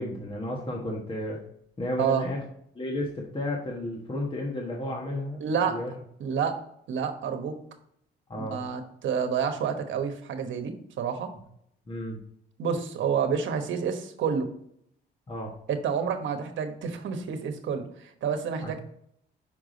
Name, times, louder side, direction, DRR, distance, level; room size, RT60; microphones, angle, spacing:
voice 1, 0.0-1.4 1.8-2.4 2.7-5.4 5.7-5.9 8.3-8.6 11.9-12.2 15.3-15.5 18.6-18.7, left 1 dB, 25° left, -1 dB, 1.3 m, -32 dB
voice 2, 2.0-2.3 5.4-5.8 6.2-6.6 6.9-7.6 8.4-11.3 12.6-14.5 15.7-18.8, right 6 dB, 70° right, 6 dB, 1.2 m, -29 dB
5.9 x 4.8 x 3.9 m, 0.70 s
cardioid pair, 90°, 20 cm